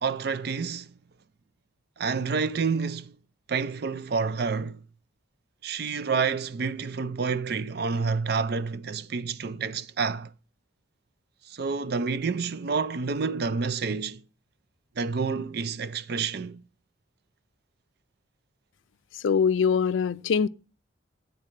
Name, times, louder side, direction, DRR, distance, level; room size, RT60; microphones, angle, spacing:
voice 1, 0.0-0.9 2.0-3.1 3.5-4.8 5.6-10.3 11.5-14.2 15.0-16.6, right 5 dB, 55° right, 0.5 m, -29 dB
voice 2, 19.2-20.5, left 6 dB, 75° left, 0.4 m, -23 dB
9.9 x 4.0 x 7.4 m
head